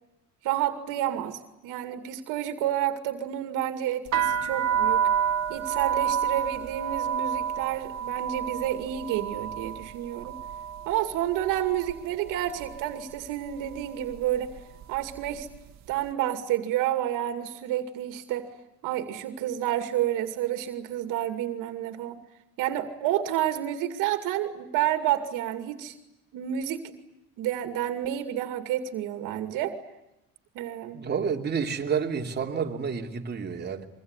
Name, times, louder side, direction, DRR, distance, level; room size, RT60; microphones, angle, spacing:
voice 1, 0.4-5.1 5.5-10.4 10.9-14.6 14.9-15.5 15.9-18.5 18.8-22.2 22.6-25.9 26.3-26.9 27.4-29.7 30.5-31.1, right 12 dB, 85° right, 8 dB, 2.4 m, -30 dB
sound 1, 4.1-12.0 12.3-12.9 13.5-13.8 14.1-15.6, right 8 dB, 60° right, 1.9 m, -29 dB
voice 2, 30.9-33.9, right 6 dB, 35° right, 3 dB, 3.1 m, -29 dB
26.0 x 23.5 x 9.7 m, 0.89 s
cardioid pair, 120°, 31 cm